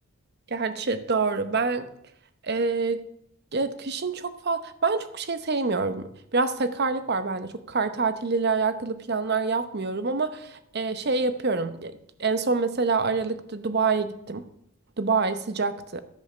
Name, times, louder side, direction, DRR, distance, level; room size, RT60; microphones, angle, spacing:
voice 1, 0.5-1.9 2.4-3.0 3.5-11.9 12.2-14.4 15.0-16.0, right 4 dB, 50° right, 11 dB, 0.8 m, -26 dB
13.5 x 5.5 x 6.7 m, 0.73 s
head